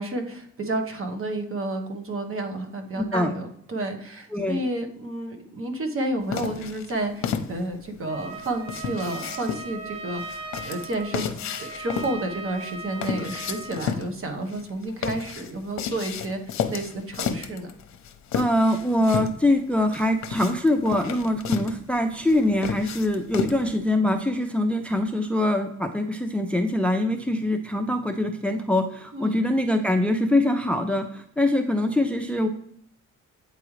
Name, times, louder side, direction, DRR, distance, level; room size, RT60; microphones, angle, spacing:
voice 1, 0.0-11.3 11.6-17.7 29.1-29.4, right 2 dB, 45° right, 5 dB, 1.2 m, -31 dB
voice 2, 3.0-3.3 4.3-4.6 18.3-32.5, left 1 dB, 5° left, 6 dB, 0.5 m, -23 dB
sound 1, 6.3-23.8, left 8 dB, 65° left, 0.7 m, -33 dB
Trumpet, 8.1-13.9, right 2 dB, 60° right, 0.8 m, -38 dB
8.6 x 3.7 x 3.2 m, 0.70 s
cardioid pair, 90°, 30 cm